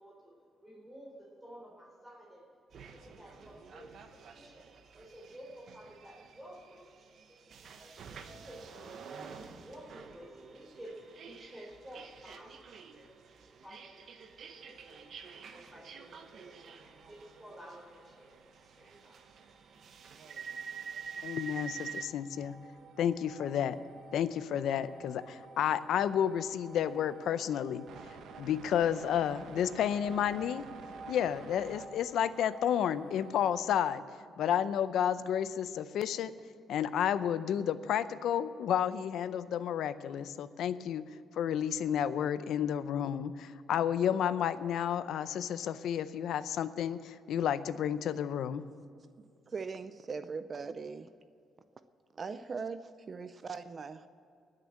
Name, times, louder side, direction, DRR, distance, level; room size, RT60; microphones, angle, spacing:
voice 1, 0.0-19.7, equal, 10° right, -5 dB, 3.8 m, -53 dB
sound 1, 2.7-22.0, right 6 dB, 60° right, 1.1 m, -48 dB
sound 2, 14.6-33.4, right 4 dB, 80° right, 1.0 m, -52 dB
voice 2, 21.2-22.6 23.0-23.8 24.1-30.7 31.1-34.0 34.4-36.3 36.7-48.6, left 9 dB, 80° left, 14 dB, 0.6 m, -31 dB
voice 3, 49.5-51.1 52.1-54.1, right 5 dB, 35° right, 12 dB, 0.5 m, -40 dB
20.0 x 6.7 x 7.4 m, 2.4 s
cardioid pair, 125°, 0 cm